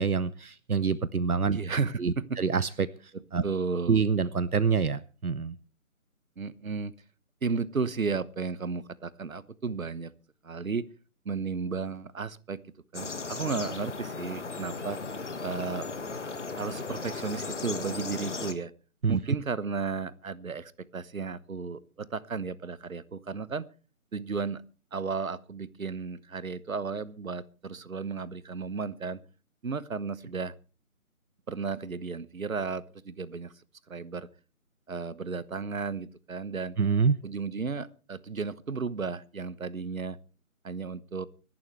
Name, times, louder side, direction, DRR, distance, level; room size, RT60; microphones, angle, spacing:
voice 1, 0.0-1.6 2.0-2.9 3.3-3.4 3.9-5.6 19.0-19.2 36.8-37.2, right 5 dB, 90° right, 18 dB, 0.9 m, -26 dB
voice 2, 1.5-2.4 3.1-4.0 6.4-6.9 7.4-10.1 10.4-10.9 11.2-12.6 12.9-15.0 15.4-15.9 16.6-18.7 19.1-23.7 24.1-24.6 24.9-29.2 29.6-30.5 31.5-33.5 33.9-34.3 34.9-36.7 37.2-40.2 40.6-41.3, right 5 dB, 70° right, 18 dB, 1.1 m, -34 dB
sound 1, 12.9-18.5, left 4 dB, 55° left, 1.7 m, -36 dB
25.0 x 11.5 x 3.3 m, 0.36 s
figure-of-eight pair, 155°, 43 cm